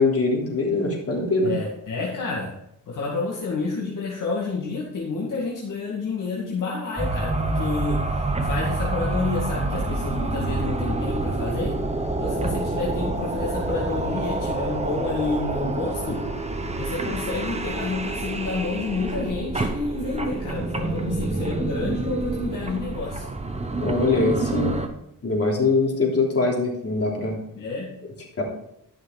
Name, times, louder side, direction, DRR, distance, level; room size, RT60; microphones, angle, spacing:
voice 1, 0.0-1.5 23.8-24.8 25.2-27.4 28.4-28.5, left 3 dB, 45° left, -2 dB, 3.5 m, -22 dB
voice 2, 1.4-2.5 2.9-8.0 8.4-11.8 12.2-16.2 16.8-23.3 27.5-27.9, left 3 dB, 65° left, -4 dB, 2.1 m, -29 dB
sound 1, 7.0-24.9, right 2 dB, 20° right, 1.0 m, -27 dB
12.5 x 6.4 x 4.0 m, 0.76 s
cardioid pair, 110°, 34 cm